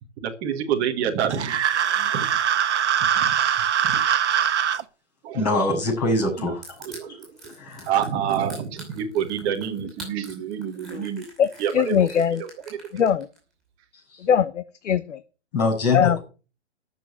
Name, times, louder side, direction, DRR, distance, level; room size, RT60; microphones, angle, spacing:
voice 1, 0.2-1.6 2.0-2.4 3.1-3.3 3.8-4.0 5.2-5.5 6.8-7.3 7.8-11.3 11.6-12.1 12.4-13.1, right 8 dB, 15° right, 0 dB, 1.2 m, -28 dB
sound 1, 1.3-4.8, right 9 dB, 70° right, 1.2 m, -22 dB
voice 2, 5.3-6.6 7.6-7.9 15.5-16.2, left 2 dB, 35° left, 2 dB, 7.0 m, -23 dB
Crushing, 6.6-13.4, right 1 dB, ahead, 5.7 m, -44 dB
voice 3, 11.7-12.4 12.9-13.3 14.2-15.2 15.9-16.2, left 8 dB, 90° left, 13 dB, 1.1 m, -21 dB
13.5 x 7.1 x 7.9 m, 0.34 s
hypercardioid pair, 175°, 35 cm